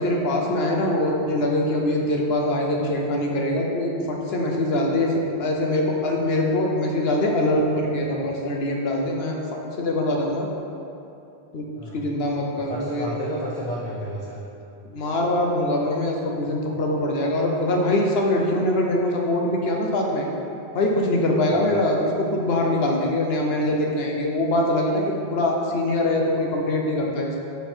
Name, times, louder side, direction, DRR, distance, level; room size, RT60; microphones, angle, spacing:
voice 1, 0.0-5.1 5.4-10.5 11.5-11.7 11.9-13.3 14.8-20.3 20.7-25.0 25.3-27.4, left 1 dB, 70° left, 0 dB, 1.1 m, -23 dB
voice 2, 12.6-14.4 21.5-21.6, equal, 45° left, -5 dB, 0.7 m, -31 dB
5.7 x 4.4 x 4.4 m, 2.7 s
omnidirectional pair, 1.1 m